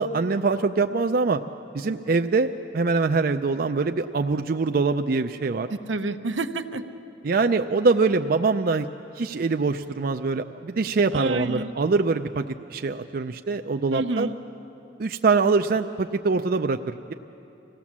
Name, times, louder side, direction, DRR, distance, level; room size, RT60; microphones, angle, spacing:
voice 1, 0.0-1.4 1.7-2.5 2.7-5.7 7.2-8.9 9.2-14.3 15.0-17.1, right 4 dB, 50° right, 6 dB, 0.4 m, -23 dB
voice 2, 5.7-6.8 11.1-11.7 13.9-14.3, right 2 dB, 85° right, 7 dB, 0.9 m, -28 dB
25.5 x 17.0 x 7.3 m, 2.8 s
head